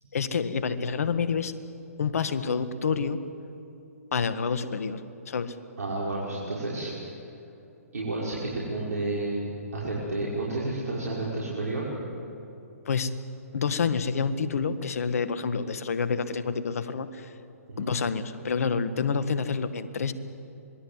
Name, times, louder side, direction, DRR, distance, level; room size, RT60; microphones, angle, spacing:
voice 1, 0.1-1.5 2.0-3.2 4.1-5.0 5.3-5.5 12.8-13.1 13.5-17.3 17.8-20.1, left 5 dB, 65° left, 12 dB, 1.6 m, -28 dB
voice 2, 5.8-6.9 7.9-11.8 17.7-17.9, right 2 dB, 70° right, -5 dB, 5.9 m, -31 dB
26.0 x 21.0 x 8.0 m, 2.8 s
hypercardioid pair, 130°, 8 cm